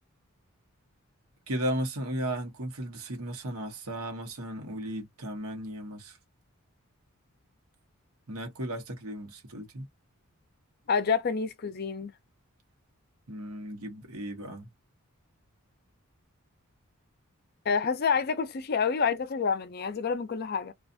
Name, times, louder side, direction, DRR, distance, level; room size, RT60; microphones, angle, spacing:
voice 1, 1.5-6.2 8.3-9.9 13.3-14.7, right 1 dB, 80° right, 1.0 m, -35 dB
voice 2, 10.9-12.1 17.7-20.7, left 5 dB, 45° left, 0.4 m, -28 dB
2.5 x 2.4 x 2.6 m
head